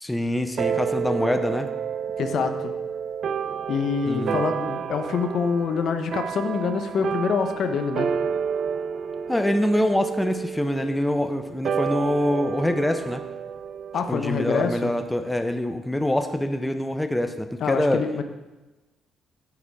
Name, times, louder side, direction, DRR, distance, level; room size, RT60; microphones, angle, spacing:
voice 1, 0.0-1.7 4.1-4.4 9.3-13.2 14.1-18.0, left 1 dB, 10° left, 7 dB, 0.6 m, -25 dB
sound 1, 0.6-15.3, right 7 dB, 60° right, 0.3 m, -30 dB
voice 2, 2.2-2.7 3.7-8.1 13.9-14.9 17.6-18.2, left 6 dB, 65° left, 7 dB, 0.6 m, -26 dB
8.2 x 5.0 x 4.5 m, 1.1 s
cardioid pair, 90°, 0 cm